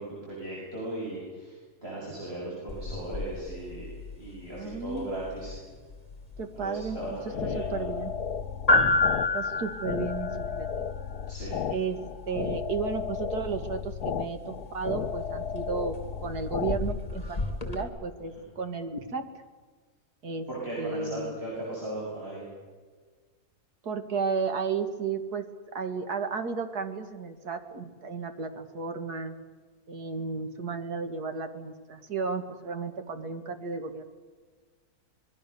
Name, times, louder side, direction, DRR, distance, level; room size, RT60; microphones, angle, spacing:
voice 1, 0.0-1.6 1.8-3.9 4.2-5.5 6.5-7.8 11.3-11.6 20.5-22.4, right 2 dB, 35° right, -5 dB, 7.6 m, -37 dB
sound 1, 2.7-17.8, left 3 dB, 25° left, 2.8 m, -32 dB
voice 2, 4.5-5.1 6.4-7.0 7.2-8.1 9.3-10.9 11.7-12.0 12.3-19.2 20.2-20.5 20.8-21.4 23.8-25.4 25.7-29.4 29.9-34.1, right 5 dB, 75° right, 7 dB, 2.5 m, -33 dB
sound 2, 7.0-16.8, left 7 dB, 70° left, 1.5 m, -34 dB
26.0 x 22.0 x 6.9 m, 1.5 s
omnidirectional pair, 1.7 m